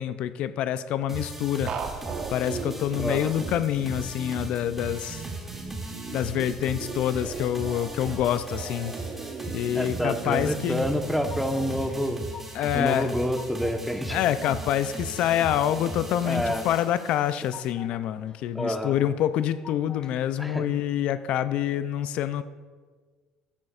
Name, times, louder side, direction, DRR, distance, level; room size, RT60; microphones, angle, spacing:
voice 1, 0.0-1.7 2.3-5.2 6.1-8.9 9.5-10.9 12.5-13.1 14.1-22.4, left 11 dB, 65° left, 12 dB, 0.4 m, -26 dB
sound 1, 1.1-17.7, right 2 dB, 15° right, 2.3 m, -38 dB
sound 2, 1.7-11.9, right 5 dB, 55° right, 1.1 m, -38 dB
voice 2, 3.0-3.3 9.7-12.2 12.7-14.2 16.2-16.6 18.5-19.0 20.4-20.6, equal, ahead, 6 dB, 1.0 m, -28 dB
sound 3, 10.7-11.7 12.0-12.8 13.1-13.7 14.1-14.8 15.2-15.9 16.2-16.9 17.2-17.9 18.3-19.0 19.3-20.1, left 7 dB, 40° left, 0.7 m, -45 dB
13.0 x 8.7 x 2.4 m, 1.5 s
supercardioid pair, 75°, 2 cm